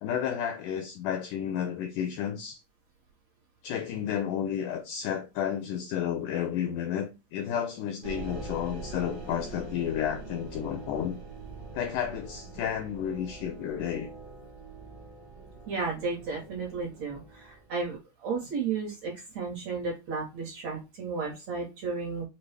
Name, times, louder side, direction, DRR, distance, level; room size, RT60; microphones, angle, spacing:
voice 1, 0.0-2.6 3.6-11.2 11.7-14.1, left 9 dB, 85° left, 1.8 m, -32 dB
sound 1, 8.0-17.7, right 3 dB, 85° right, 0.9 m, -43 dB
voice 2, 15.7-22.2, right 4 dB, 65° right, 1.8 m, -33 dB
5.6 x 2.3 x 3.2 m
omnidirectional pair, 4.1 m